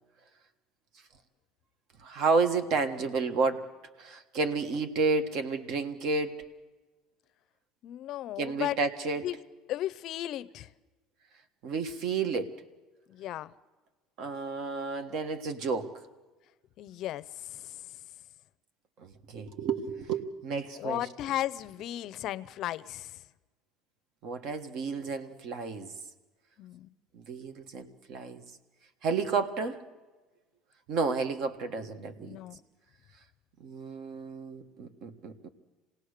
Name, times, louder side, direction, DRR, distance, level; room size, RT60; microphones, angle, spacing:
voice 1, 2.0-3.7 4.0-6.4 8.4-9.3 11.6-12.5 14.2-16.0 19.0-21.0 24.2-25.9 27.1-28.4 29.0-29.8 30.9-32.3 33.6-35.5, right 4 dB, 50° right, 1.5 m, -31 dB
voice 2, 7.8-8.8 9.2-9.4 9.7-10.7 13.1-13.5 16.8-17.9 20.8-23.2 26.6-26.9 32.2-32.6, left 13 dB, 45° left, 0.6 m, -35 dB
26.5 x 18.5 x 6.6 m
cardioid pair, 160°, 0 cm